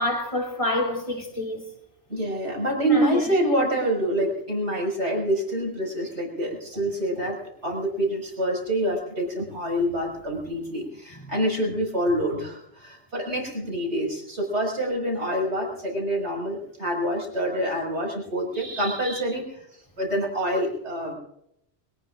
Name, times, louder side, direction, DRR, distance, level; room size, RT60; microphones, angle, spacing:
voice 1, 0.0-1.7 2.8-3.1 18.5-19.2, left 1 dB, 30° left, 3.2 m, -28 dB
voice 2, 2.1-7.4 7.6-21.1, right 1 dB, 80° right, 6.2 m, -26 dB
23.5 x 20.0 x 2.5 m
omnidirectional pair, 1.2 m